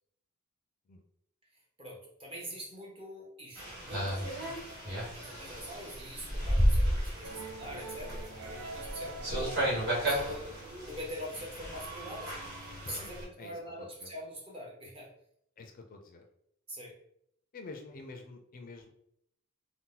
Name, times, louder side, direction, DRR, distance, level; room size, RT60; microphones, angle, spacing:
voice 1, 1.8-9.6 10.0-10.5 10.8-12.6 12.8-15.1 16.7-16.9, equal, 25° right, -2 dB, 0.8 m, -44 dB
sound 1, 3.6-13.2, equal, 55° right, 1.3 m, -33 dB
sound 2, 7.2-12.0, right 3 dB, 80° right, 0.4 m, -46 dB
voice 2, 13.4-14.1 15.6-16.3 17.5-18.9, left 3 dB, 40° left, 4 dB, 0.4 m, -48 dB
2.7 x 2.1 x 3.7 m, 0.72 s
head